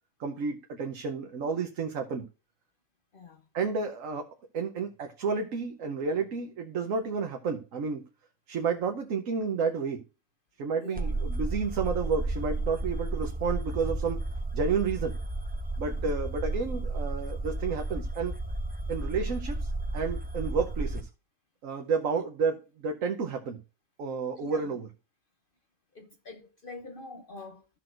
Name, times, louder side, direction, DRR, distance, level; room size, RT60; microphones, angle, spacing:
voice 1, 0.2-2.2 3.5-8.0 8.5-10.0 10.6-14.2 14.5-15.2 15.8-18.3 18.9-21.1 21.6-23.6 24.0-24.9, right 5 dB, 80° right, 1.3 m, -31 dB
voice 2, 3.1-3.5 10.8-11.1 15.9-16.2 24.4-24.7 25.9-27.7, left 3 dB, 50° left, 0.9 m, -45 dB
sound 1, 11.0-21.0, right 2 dB, 15° right, 0.3 m, -32 dB
14.0 x 6.0 x 2.5 m
omnidirectional pair, 1.4 m